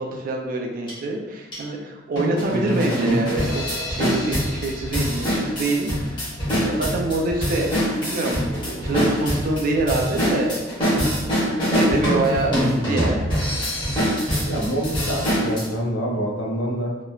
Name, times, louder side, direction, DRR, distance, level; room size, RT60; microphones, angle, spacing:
voice 1, 0.0-6.3 6.6-11.3 11.7-13.2, right 2 dB, 50° right, 1 dB, 0.4 m, -26 dB
sound 1, 0.9-1.0 1.5-1.6 2.2-15.6, equal, 25° left, 1.0 m, -24 dB
voice 2, 14.4-17.0, equal, 75° left, -2 dB, 0.6 m, -26 dB
3.0 x 2.1 x 2.3 m, 1.1 s
head